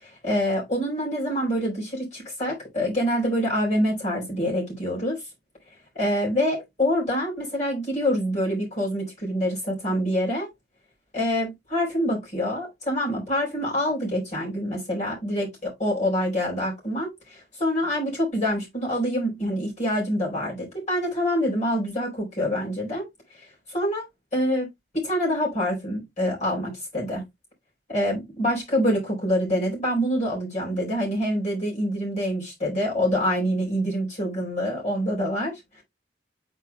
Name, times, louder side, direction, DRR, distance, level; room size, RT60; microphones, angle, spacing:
voice 1, 0.0-5.2 5.9-10.5 11.1-23.1 23.7-24.0 24.3-24.7 24.9-27.2 27.9-35.5, equal, 40° left, 4.4 m, -26 dB
8.4 x 4.8 x 2.3 m
head